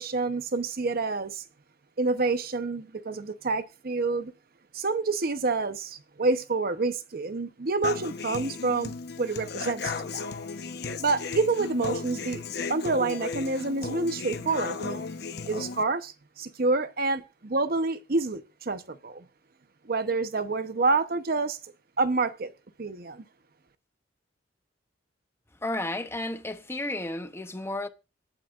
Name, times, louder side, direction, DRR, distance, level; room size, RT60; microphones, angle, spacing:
voice 1, 0.0-1.4 2.0-4.3 4.7-10.3 11.0-12.4 12.7-15.0 15.5-19.2 19.8-21.6 22.0-22.5 22.8-23.2, right 3 dB, 50° right, 0.8 m, -28 dB
Human voice / Acoustic guitar, 7.8-15.8, left 4 dB, 55° left, 0.9 m, -35 dB
voice 2, 25.6-27.9, left 2 dB, 15° left, 0.8 m, -32 dB
25.5 x 9.0 x 2.5 m
head